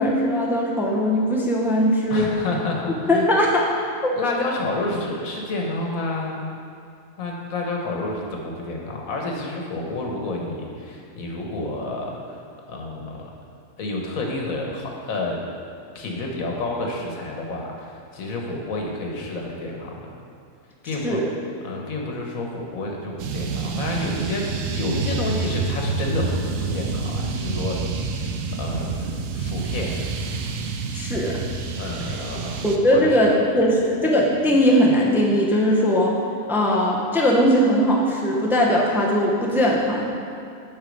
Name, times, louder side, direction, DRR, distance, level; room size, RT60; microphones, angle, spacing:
voice 1, 0.0-2.3 3.1-3.7 4.0-4.1 21.0-21.3 30.9-31.4 32.6-36.1 36.5-40.0, equal, ahead, -3 dB, 0.7 m, -19 dB
voice 2, 2.1-3.3 4.2-6.5 7.2-12.4 12.7-13.3 13.8-15.4 15.9-20.1 20.8-21.2 21.6-27.8 28.2-28.3 28.6-30.0 31.8-32.6 32.9-33.2, left 2 dB, 85° left, 0 dB, 1.5 m, -29 dB
sound 1, 23.2-32.8, right 4 dB, 75° right, 1.0 m, -28 dB
7.9 x 5.6 x 5.3 m, 2.4 s
omnidirectional pair, 1.4 m